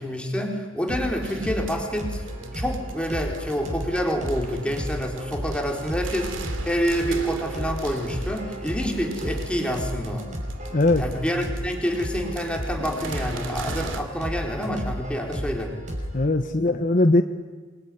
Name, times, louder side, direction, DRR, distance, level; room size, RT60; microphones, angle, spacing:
voice 1, 0.0-10.3 11.0-15.7, equal, 5° left, 1 dB, 4.1 m, -28 dB
sound 1, 0.9-16.2, equal, 40° right, 5.9 m, -33 dB
sound 2, 1.2-14.0, right 3 dB, 75° right, 2.6 m, -39 dB
voice 2, 10.7-11.0 16.1-17.2, left 2 dB, 40° left, 7 dB, 1.1 m, -20 dB
26.5 x 21.5 x 9.9 m, 1.4 s
head